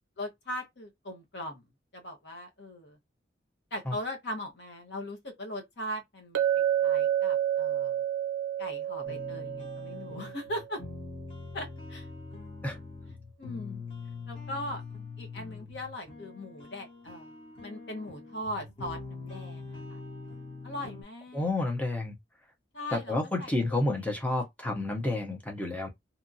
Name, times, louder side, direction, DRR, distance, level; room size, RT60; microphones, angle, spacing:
voice 1, 0.2-1.6 1.9-3.0 3.7-8.0 8.6-10.8 11.5-12.1 13.4-13.8 14.3-14.8 15.2-17.3 17.6-20.0 20.6-21.5 22.7-24.0, left 1 dB, 65° left, 0.9 m, -39 dB
Chink clink, 6.3-10.5, right 11 dB, 75° right, 0.4 m, -29 dB
sound 1, 9.0-21.0, left 4 dB, 30° left, 1.1 m, -43 dB
voice 2, 21.3-22.2 22.9-25.9, left 2 dB, 10° left, 0.7 m, -30 dB
2.8 x 2.4 x 2.6 m
head